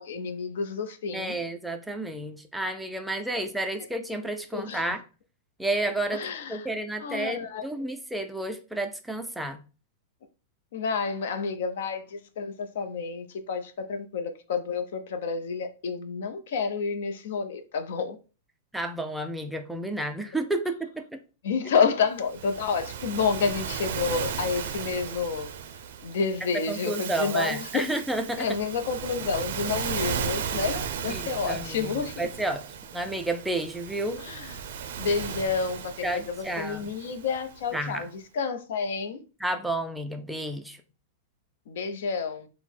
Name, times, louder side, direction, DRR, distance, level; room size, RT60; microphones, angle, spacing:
voice 1, 0.0-1.4 4.5-4.9 6.1-6.7 7.0-7.6 10.7-18.2 21.4-25.5 26.0-27.8 28.4-32.2 34.2-34.6 35.0-39.2 41.7-42.5, left 5 dB, 65° left, 0.6 m, -29 dB
voice 2, 1.1-5.0 5.6-9.6 18.7-21.0 26.7-28.5 31.1-32.6 32.9-34.2 36.0-36.9 37.7-38.1 39.4-40.8, right 1 dB, ahead, 0.3 m, -31 dB
Waves surf, 22.2-37.7, right 7 dB, 60° right, 0.5 m, -35 dB
3.8 x 2.0 x 4.3 m
supercardioid pair, 170°, 0 cm